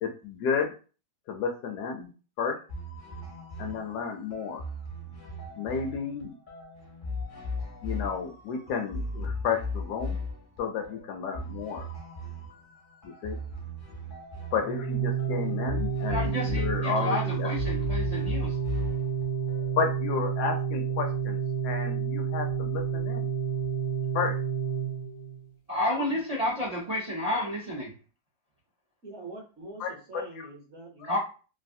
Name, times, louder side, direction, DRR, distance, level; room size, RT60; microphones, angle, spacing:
voice 1, 0.0-0.7 1.3-2.1 2.4-2.6 3.6-4.6 5.6-6.3 7.8-10.2 10.6-11.8 13.0-13.4 14.5-17.5 19.8-23.3 24.1-24.4 29.8-30.5, left 5 dB, 70° left, 4 dB, 1.0 m, -32 dB
sound 1, 2.7-20.0, left 2 dB, 50° left, 0.5 m, -37 dB
Organ, 14.6-25.5, right 7 dB, 90° left, 1.3 m, -30 dB
voice 2, 16.1-18.6 25.7-27.9 31.0-31.2, left 1 dB, 75° right, -5 dB, 0.3 m, -30 dB
voice 3, 29.0-31.2, right 2 dB, 55° right, -1 dB, 0.9 m, -44 dB
3.2 x 2.5 x 2.6 m, 0.35 s
omnidirectional pair, 2.0 m